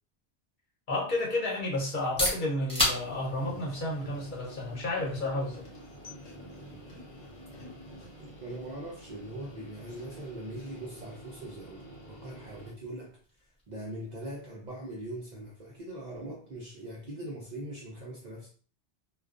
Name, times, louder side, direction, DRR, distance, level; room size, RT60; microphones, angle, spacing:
voice 1, 0.9-5.6, left 2 dB, 50° left, 0.9 m, -31 dB
sound 1, 1.9-17.5, left 1 dB, 5° left, 0.9 m, -40 dB
sound 2, 2.9-12.7, equal, 75° left, 1.1 m, -48 dB
voice 2, 8.2-13.2 13.7-18.5, right 1 dB, 55° right, 0.5 m, -41 dB
2.3 x 2.3 x 2.4 m
omnidirectional pair, 1.1 m